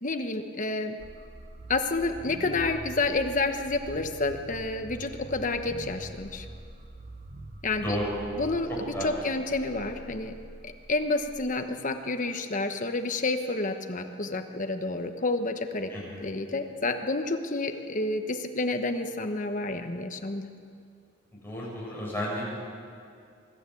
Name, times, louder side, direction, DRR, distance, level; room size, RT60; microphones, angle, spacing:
voice 1, 0.0-1.0 1.7-6.5 7.6-7.9 8.3-8.7 9.0-10.3 10.6-15.9 16.2-20.5, left 2 dB, 40° left, 6 dB, 1.2 m, -29 dB
sound 1, 1.0-11.9, right 1 dB, 40° right, 1.1 m, -45 dB
voice 2, 8.7-9.2 15.9-16.2 21.4-22.6, equal, 10° left, -5 dB, 7.0 m, -32 dB
23.5 x 13.0 x 8.5 m, 2.4 s
head